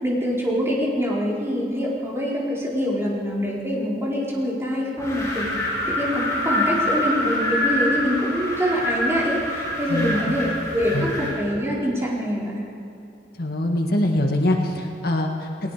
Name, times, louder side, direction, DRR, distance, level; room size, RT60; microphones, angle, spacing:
voice 1, 0.0-5.5 5.9-12.6, equal, 15° right, -6 dB, 4.5 m, -25 dB
Wind, 5.0-11.4, left 1 dB, 20° left, 6.7 m, -26 dB
voice 2, 9.9-10.2 10.9-11.1 13.4-15.7, left 1 dB, 60° left, 2 dB, 1.9 m, -23 dB
29.5 x 19.5 x 5.1 m, 2.6 s
head